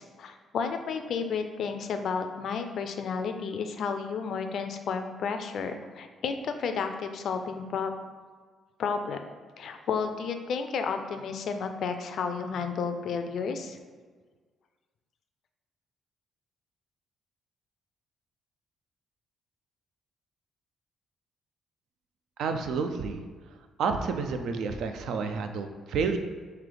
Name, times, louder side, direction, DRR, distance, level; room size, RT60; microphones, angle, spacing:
voice 1, 0.0-7.9 8.8-9.2 9.6-13.8, left 5 dB, 65° left, 7 dB, 0.4 m, -32 dB
voice 2, 22.4-23.2 23.8-26.2, right 5 dB, 75° right, 7 dB, 0.3 m, -30 dB
3.3 x 2.8 x 3.8 m, 1.5 s
cardioid pair, 90°, 0 cm